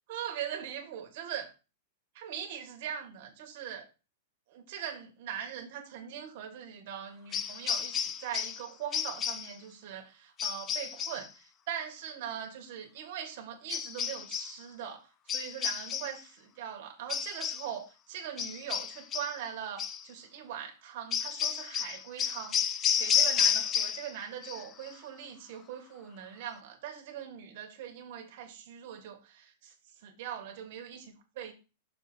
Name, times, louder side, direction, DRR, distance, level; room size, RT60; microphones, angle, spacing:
voice 1, 0.1-1.5 2.1-3.8 4.5-16.2 16.5-31.5, right 9 dB, 40° right, 1.8 m, -41 dB
sound 1, 7.3-8.6 8.9-9.5 10.4-11.3 13.7-14.6 15.3-16.2 17.1-17.7 18.4-19.4 19.8-20.0 21.1-24.1 24.4-24.9, left 8 dB, 15° left, 0.3 m, -31 dB
6.6 x 4.2 x 6.1 m
supercardioid pair, 180°, 0 cm